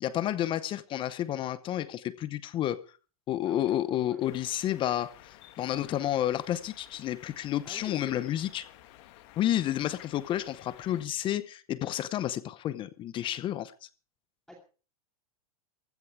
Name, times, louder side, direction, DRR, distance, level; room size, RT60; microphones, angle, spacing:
voice 1, 0.0-2.8 3.3-8.6 9.4-13.7, left 12 dB, 25° left, 0.8 m, -30 dB
voice 2, 3.4-4.4 7.6-8.4 14.5-14.6, left 1 dB, 5° left, 2.5 m, -47 dB
sound 1, 4.2-11.1, left 15 dB, 50° left, 1.6 m, -54 dB
15.5 x 13.5 x 4.7 m
hypercardioid pair, 135°, 19 cm